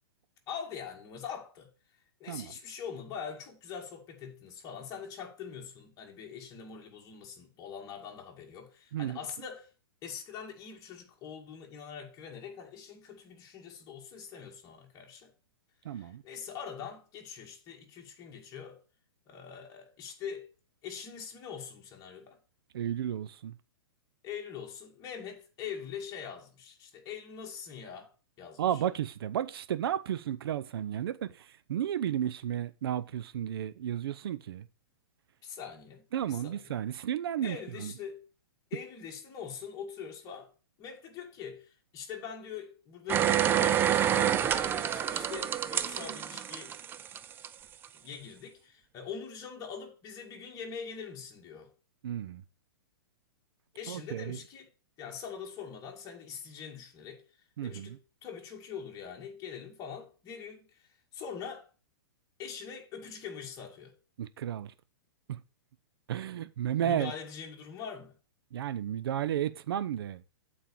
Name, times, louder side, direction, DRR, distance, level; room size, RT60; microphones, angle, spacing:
voice 1, 0.5-1.7 2.2-9.7 10.0-15.3 15.9-18.8 19.3-20.5 20.8-22.4 24.2-28.1 28.4-28.6 35.4-36.8 37.4-38.2 38.7-40.5 40.8-46.8 47.9-51.7 53.7-54.7 55.0-57.2 57.6-61.7 62.4-64.0 66.8-68.1, left 7 dB, 25° left, 2.2 m, -43 dB
voice 2, 15.8-16.2 22.7-23.5 28.6-34.6 36.1-37.9 52.0-52.4 53.9-54.4 57.6-58.0 64.2-64.7 65.3-65.4 66.1-67.1 68.5-70.2, right 10 dB, 70° right, 0.6 m, -33 dB
sound 1, 43.1-47.5 47.8-47.9, right 10 dB, 15° right, 0.4 m, -28 dB
7.6 x 4.3 x 6.9 m
hypercardioid pair, 140°, 13 cm